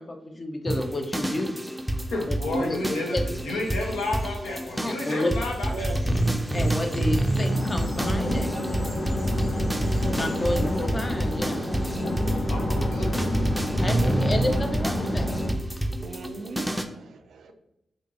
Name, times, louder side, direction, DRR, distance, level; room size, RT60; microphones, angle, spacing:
voice 1, 0.0-1.5 2.3-3.2 4.8-5.3 6.5-8.5 10.1-12.4 13.8-15.4, left 1 dB, 35° left, 5 dB, 0.6 m, -30 dB
sound 1, 0.7-16.8, right 1 dB, 5° right, 0.5 m, -28 dB
voice 2, 2.1-3.2 3.4-6.1 8.9-9.2 12.5-13.4, left 2 dB, 90° left, 0 dB, 0.8 m, -31 dB
Bird vocalization bird call bird song, 3.6-12.5, equal, 20° left, 1.4 m, -48 dB
sound 2, 7.5-15.5, left 1 dB, 70° left, 1.3 m, -30 dB
voice 3, 16.0-17.5, right 4 dB, 75° right, 8 dB, 0.3 m, -39 dB
4.3 x 2.7 x 2.5 m, 0.82 s
supercardioid pair, 40°, 0 cm